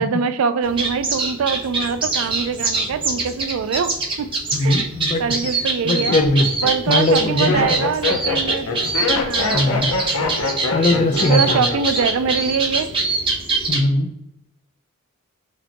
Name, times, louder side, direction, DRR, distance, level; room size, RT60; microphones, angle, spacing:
voice 1, 0.0-4.3 4.6-4.9 5.2-6.1 6.6-8.7 9.2-9.8 11.3-12.9, right 6 dB, 65° right, 11 dB, 0.3 m, -23 dB
sound 1, 0.6-13.8, right 3 dB, 25° right, 0.8 m, -24 dB
voice 2, 4.5-5.2 5.5-6.5 6.9-7.8 9.5-9.9 10.7-11.7 13.7-14.1, left 2 dB, 30° left, 7 dB, 0.4 m, -20 dB
Laughter, 4.7-5.1 5.7-12.3 12.6-13.1, left 3 dB, 70° left, 0.7 m, -25 dB
4.9 x 2.2 x 2.8 m, 0.86 s
head